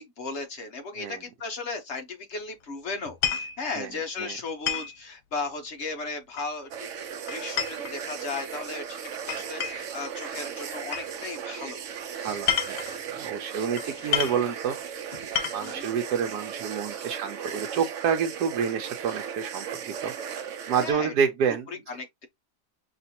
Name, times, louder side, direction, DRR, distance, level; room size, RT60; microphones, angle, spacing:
voice 1, 0.0-11.8 12.1-12.4 12.9-13.0 13.8-14.3 15.6-15.9 20.8-21.1 21.9-22.3, left 3 dB, 50° left, 1.0 m, -36 dB
sound 1, 3.1-3.6 4.7-5.0 6.4-6.8 7.3-8.5 9.3-9.9 10.9-11.1 12.3-13.0 13.8-13.9 14.1-14.4 15.1-15.8, left 10 dB, 85° left, 1.4 m, -29 dB
sound 2, 6.7-20.9, right 8 dB, 60° right, 0.9 m, -37 dB
voice 2, 12.2-12.8 13.2-14.8 15.5-20.1 20.7-21.7, right 7 dB, 85° right, 1.3 m, -28 dB
5.8 x 2.5 x 2.8 m
omnidirectional pair, 1.7 m